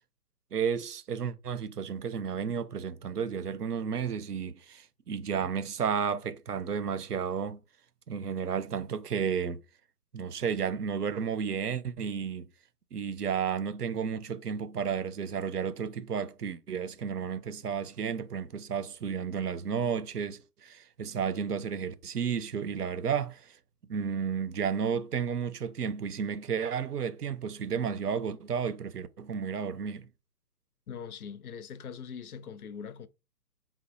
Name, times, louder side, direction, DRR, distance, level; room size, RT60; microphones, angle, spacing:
voice 1, 0.5-7.6 8.1-9.6 10.1-12.5 12.9-23.6 23.9-30.1, right 7 dB, 80° right, 0.6 m, -32 dB
voice 2, 30.9-33.1, left 7 dB, 70° left, 0.5 m, -42 dB
4.1 x 2.0 x 2.9 m
figure-of-eight pair, 130°, 46 cm